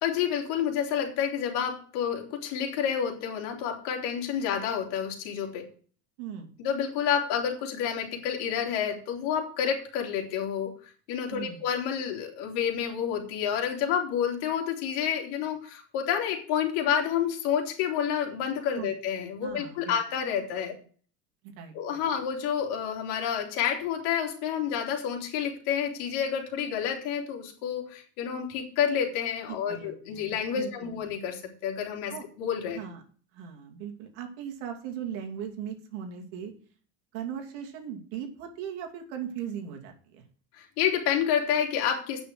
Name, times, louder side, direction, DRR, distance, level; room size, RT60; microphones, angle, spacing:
voice 1, 0.0-5.7 6.6-20.8 21.7-32.1 32.4-32.8 40.5-42.3, left 8 dB, 65° left, 2 dB, 3.3 m, -29 dB
voice 2, 6.2-6.5 11.3-11.6 18.8-18.9 19.4-20.0 21.4-22.0 29.5-30.9 32.1-32.2 32.7-33.0 33.3-36.5 37.1-40.2, right 8 dB, 70° right, 3 dB, 2.8 m, -38 dB
9.1 x 6.3 x 7.8 m, 0.43 s
cardioid pair, 155°, 36 cm